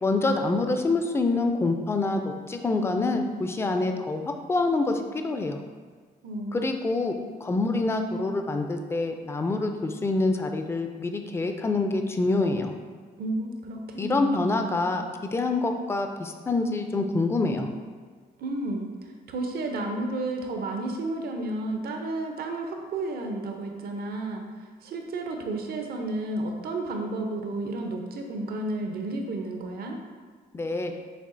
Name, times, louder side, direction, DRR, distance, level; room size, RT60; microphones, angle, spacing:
voice 1, 0.0-2.2 2.5-5.6 6.5-7.1 7.4-12.7 14.0-17.7 30.5-30.9, left 3 dB, 15° left, 5 dB, 0.3 m, -26 dB
voice 2, 6.2-6.7 13.2-14.6 18.4-18.9 19.3-24.4 24.8-30.0, right 2 dB, 70° right, 3 dB, 0.6 m, -32 dB
6.6 x 2.4 x 2.6 m, 1.5 s
cardioid pair, 95°, 17 cm